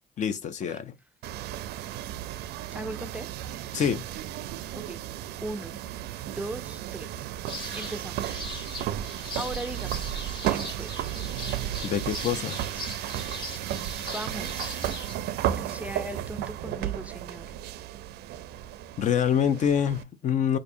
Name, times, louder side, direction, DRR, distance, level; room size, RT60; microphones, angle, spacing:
voice 1, 0.2-0.9 3.7-4.0 11.8-12.6 19.0-20.6, left 8 dB, 45° left, 0.5 m, -26 dB
sound 1, 1.2-20.0, right 12 dB, 75° right, 0.4 m, -34 dB
voice 2, 2.7-3.3 4.7-5.0 5.4-5.8 6.4-8.5 9.4-10.1 10.4-10.9 14.1-14.8 15.5-17.5, right 1 dB, 10° right, 0.4 m, -38 dB
sound 2, 7.5-15.1, left 2 dB, 30° left, 1.0 m, -40 dB
4.5 x 2.5 x 2.5 m
cardioid pair, 110°, 17 cm